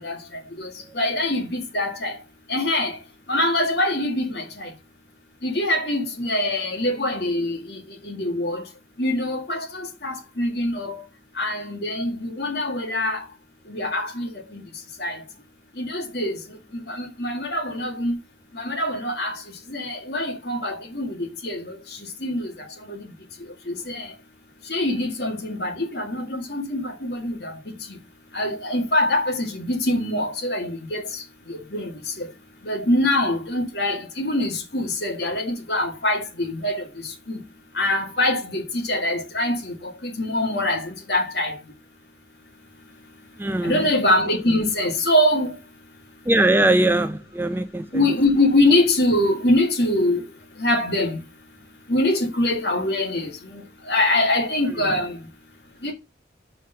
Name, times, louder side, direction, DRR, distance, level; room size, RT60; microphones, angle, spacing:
voice 1, 0.9-2.1 2.5-3.0 3.3-4.7 5.4-7.8 8.0-8.6 9.0-11.0 11.4-13.2 13.7-14.6 15.0-15.2 15.8-16.3 16.9-18.2 18.5-19.4 19.7-21.8 22.2-22.5 22.9-23.0 23.7-24.1 24.7-27.5 28.3-31.0 31.5-31.9 32.2-32.3 32.6-36.8 37.3-37.4 37.8-41.6 43.6-45.5 47.9-50.2 50.6-51.2 51.9-53.6 53.9-55.2 55.8-55.9, left 1 dB, 60° left, 1.9 m, -24 dB
voice 2, 43.4-43.9 46.3-48.1 54.7-54.9, right 1 dB, 10° right, 0.4 m, -21 dB
5.4 x 5.0 x 5.5 m
head